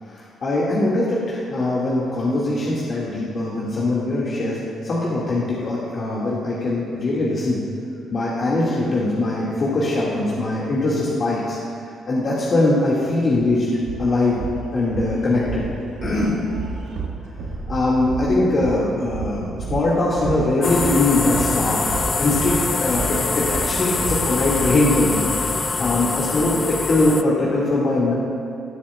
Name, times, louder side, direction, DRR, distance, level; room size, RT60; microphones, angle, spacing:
voice 1, 0.0-7.6 8.1-11.6 12.1-13.7 14.0-14.4 14.7-15.7 16.0-16.4 17.7-21.8 22.2-28.1, left 2 dB, 50° left, -7 dB, 1.8 m, -21 dB
sound 1, 13.8-25.2, right 4 dB, 85° right, 1.2 m, -32 dB
sound 2, 20.6-27.2, left 4 dB, 30° left, 0.4 m, -24 dB
19.0 x 7.0 x 2.3 m, 2.6 s
cardioid pair, 90°, 0 cm